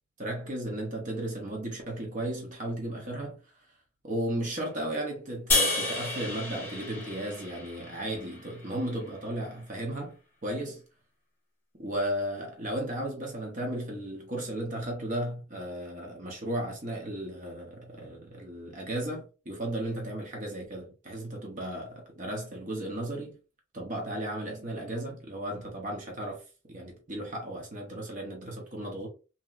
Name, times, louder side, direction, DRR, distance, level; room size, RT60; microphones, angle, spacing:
voice 1, 0.2-3.4 4.0-10.8 11.8-23.4 23.7-26.4 26.7-29.1, right 1 dB, 40° right, 0.7 m, -35 dB
sound 1, 5.5-8.8, left 2 dB, 10° left, 1.2 m, -31 dB
2.9 x 2.7 x 2.3 m
head